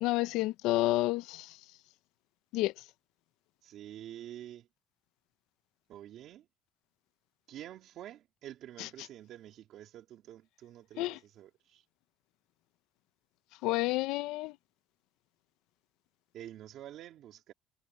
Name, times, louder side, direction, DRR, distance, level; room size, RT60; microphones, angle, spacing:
voice 1, 0.0-1.6 2.5-2.7 8.8-8.9 11.0-11.2 13.6-14.5, left 18 dB, 80° left, 0.6 m, -30 dB
voice 2, 3.6-4.7 5.9-6.5 7.5-11.8 16.3-17.5, right 12 dB, 55° right, 3.1 m, -48 dB
cardioid pair, 160°, 0 cm